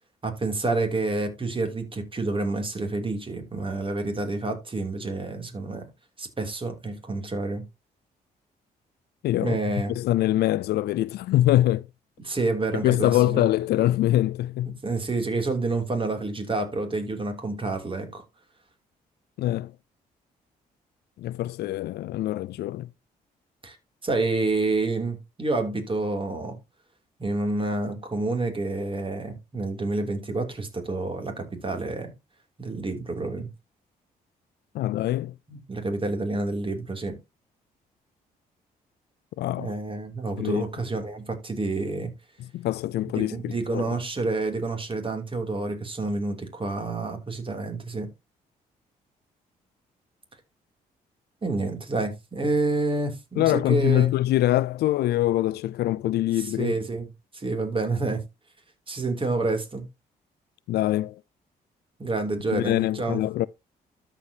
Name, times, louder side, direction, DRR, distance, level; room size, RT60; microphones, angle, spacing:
voice 1, 0.2-5.8 6.2-7.6 9.4-9.9 12.2-13.5 14.6-18.2 23.6-23.8 24.0-26.6 27.2-32.1 32.6-33.5 35.5-37.2 39.6-42.1 43.2-48.1 51.4-54.1 56.4-57.1 57.3-58.2 58.9-59.8 62.0-63.2, right 3 dB, 30° right, 3.0 m, -28 dB
voice 2, 9.2-9.6 9.9-11.9 12.7-14.8 19.4-19.7 21.2-22.9 34.7-35.3 39.4-39.7 40.4-40.6 42.4-43.9 53.4-56.7 60.7-61.2 62.5-63.5, left 14 dB, 75° left, 0.4 m, -24 dB
13.0 x 5.0 x 2.8 m
supercardioid pair, 60°, 17 cm